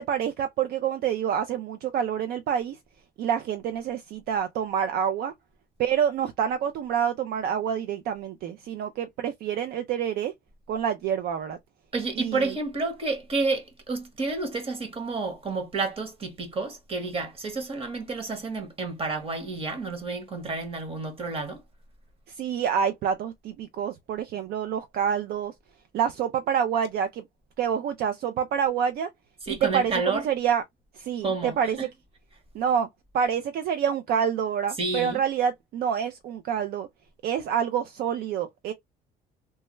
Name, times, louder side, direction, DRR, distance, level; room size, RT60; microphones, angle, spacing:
voice 1, 0.0-2.8 3.2-5.3 5.8-10.3 10.7-11.6 12.2-12.5 22.4-25.5 25.9-27.2 27.6-29.1 29.5-30.6 31.0-31.8 32.5-32.9 33.1-36.9 37.2-38.7, right 8 dB, 65° right, 0.4 m, -27 dB
voice 2, 11.9-21.6 29.4-30.3 31.2-31.9 34.7-35.2, right 3 dB, 35° right, 1.2 m, -30 dB
3.2 x 2.1 x 3.0 m
cardioid pair, 110°, 17 cm